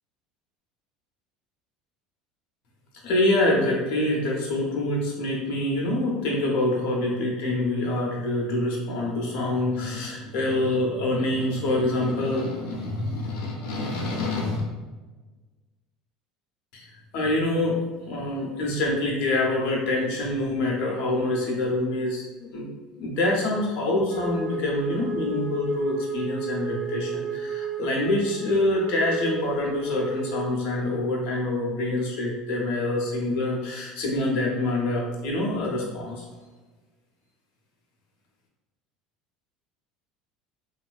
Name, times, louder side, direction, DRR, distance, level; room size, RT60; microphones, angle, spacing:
voice 1, 3.0-14.6 16.7-16.9 17.1-17.8 18.1-22.7 23.0-36.3, left 2 dB, 55° left, -2 dB, 0.6 m, -26 dB
Wind instrument woodwind instrument, 24.1-30.5, right 4 dB, 60° right, 0.6 m, -32 dB
2.9 x 2.4 x 2.2 m, 1.3 s
hypercardioid pair, 70°, 3 cm